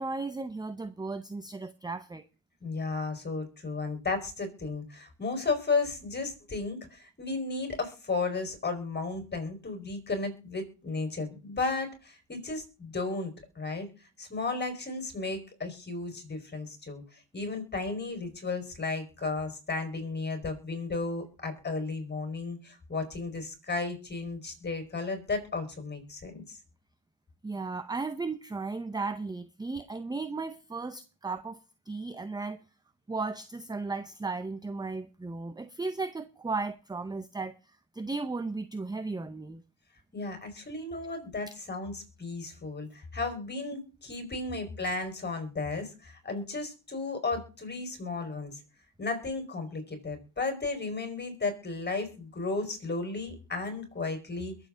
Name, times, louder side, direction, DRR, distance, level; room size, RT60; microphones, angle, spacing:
voice 1, 0.0-2.2 27.4-31.6 31.9-32.6 33.1-37.5 37.9-39.6, right 3 dB, 10° right, 0.6 m, -35 dB
voice 2, 2.6-13.9 14.2-17.0 17.3-26.6 40.1-48.6 49.0-54.6, left 3 dB, 20° left, 4.8 m, -34 dB
22.0 x 7.6 x 3.8 m
cardioid pair, 110°, 45 cm